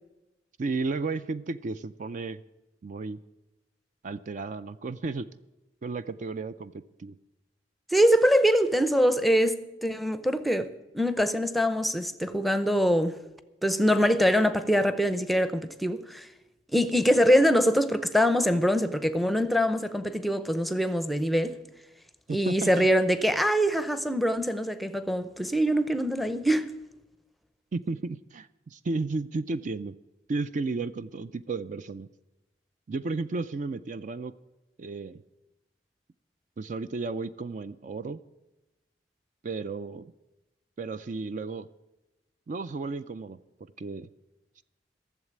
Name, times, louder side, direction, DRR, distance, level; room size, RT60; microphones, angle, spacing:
voice 1, 0.6-2.4 2.8-3.2 4.0-5.3 5.8-7.1 22.3-22.9 27.7-29.9 30.3-32.1 32.9-34.3 34.8-35.2 36.6-38.2 39.4-40.1 40.8-41.7 42.5-43.4 43.8-44.1, right 3 dB, 45° right, 0.4 m, -33 dB
voice 2, 7.9-13.2 13.6-16.3 16.7-21.6 22.3-26.7, equal, ahead, 0.6 m, -24 dB
14.0 x 7.4 x 9.5 m
head